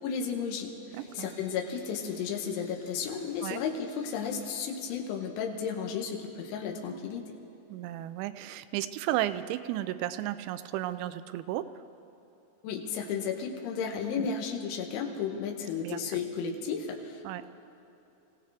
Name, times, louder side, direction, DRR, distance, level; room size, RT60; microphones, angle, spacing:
voice 1, 0.0-7.4 12.6-17.5, left 6 dB, 85° left, 2 dB, 3.6 m, -34 dB
sound 1, 0.9-4.7, left 2 dB, 55° left, 4.8 m, -55 dB
voice 2, 0.9-1.3 3.4-3.6 7.7-11.6 14.2-14.3 15.8-16.0 17.2-17.4, right 14 dB, 85° right, 12 dB, 2.9 m, -33 dB
25.5 x 16.5 x 3.4 m, 2.9 s
omnidirectional pair, 5.4 m